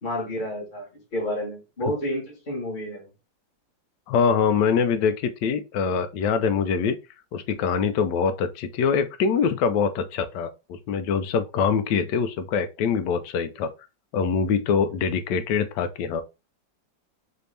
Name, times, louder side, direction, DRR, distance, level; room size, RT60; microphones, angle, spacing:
voice 1, 0.0-3.1, equal, 25° left, 1.5 m, -30 dB
voice 2, 4.1-7.0 7.3-13.7 14.1-16.2, left 6 dB, 75° left, 1.1 m, -24 dB
4.2 x 2.8 x 3.2 m
omnidirectional pair, 2.0 m